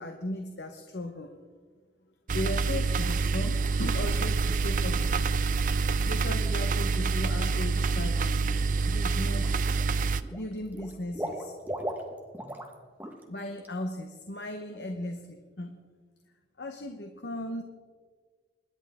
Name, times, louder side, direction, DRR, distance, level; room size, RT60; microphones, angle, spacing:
voice 1, 0.0-1.4 2.3-5.3 6.0-8.5 8.8-9.6 10.3-11.5 13.3-15.8 16.6-17.6, left 1 dB, 70° left, 5 dB, 1.1 m, -37 dB
sound 1, 2.3-10.2, right 4 dB, 50° right, 0.5 m, -27 dB
Water / Liquid, 8.7-8.9 9.2-9.9 10.2-12.7 13.0-13.2 13.6-13.7, right 1 dB, 10° right, 1.5 m, -37 dB
26.0 x 11.0 x 3.7 m, 1.5 s
head